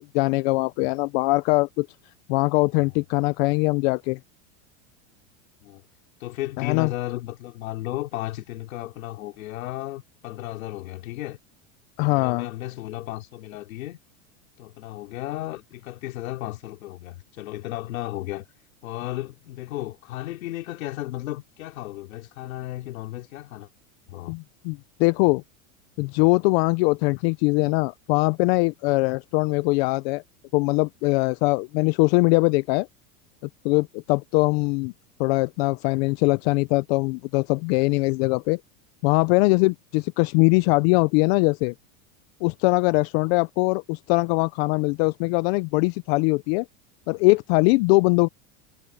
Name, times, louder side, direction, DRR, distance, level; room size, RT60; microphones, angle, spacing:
voice 1, 0.0-1.9 2.3-4.2 6.6-6.9 12.0-12.5 24.3-25.4 26.0-30.2 30.5-32.9 33.6-34.9 35.2-38.6 39.0-41.7 42.4-46.7 47.1-48.3, left 26 dB, 50° left, 0.6 m, -22 dB
voice 2, 6.2-11.4 12.0-14.0 14.6-18.4 18.8-23.7 24.1-24.3, left 16 dB, 85° left, 4.0 m, -34 dB
supercardioid pair, 150°, 40 cm